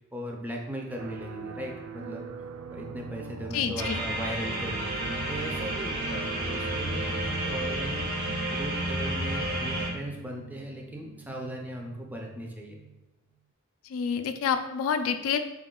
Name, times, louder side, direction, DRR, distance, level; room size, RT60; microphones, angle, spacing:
voice 1, 0.0-2.3 2.7-12.8, equal, 10° right, 0 dB, 0.4 m, -38 dB
sound 1, 1.0-13.0, right 4 dB, 85° right, 0.3 m, -41 dB
voice 2, 3.5-4.0 13.8-15.4, left 7 dB, 85° left, 9 dB, 0.3 m, -28 dB
sound 2, 3.8-9.9, right 1 dB, 45° right, 0.7 m, -31 dB
3.6 x 2.3 x 3.7 m, 1.0 s
head